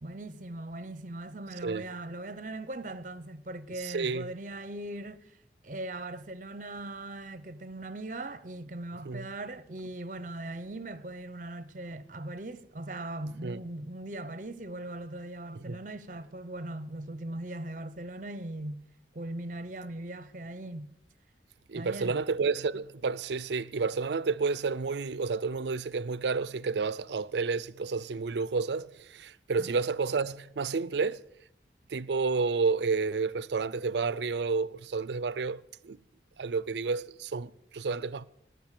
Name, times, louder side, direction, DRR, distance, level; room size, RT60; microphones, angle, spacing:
voice 1, 0.0-5.4 5.6-18.9 19.1-20.9 21.7-22.2 29.6-29.8, right 1 dB, 45° right, 0.8 m, -39 dB
voice 2, 3.8-4.3 9.0-9.3 13.4-13.6 15.5-15.8 21.7-31.2 31.9-36.0 36.4-38.2, right 4 dB, 80° right, 0.5 m, -30 dB
18.5 x 6.7 x 7.5 m
head